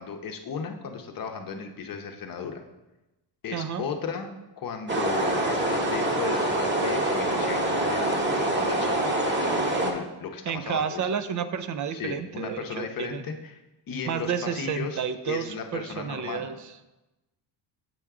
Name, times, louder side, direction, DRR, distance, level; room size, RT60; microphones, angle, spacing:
voice 1, 0.0-2.6 3.4-11.1 11.9-16.5, left 6 dB, 45° left, 4 dB, 0.8 m, -35 dB
voice 2, 3.5-3.8 10.5-13.2 14.1-16.6, right 7 dB, 40° right, 11 dB, 0.5 m, -31 dB
sound 1, 4.9-9.9, right 1 dB, 20° right, 1.0 m, -25 dB
7.8 x 4.5 x 3.6 m, 1.0 s
cardioid pair, 95°, 49 cm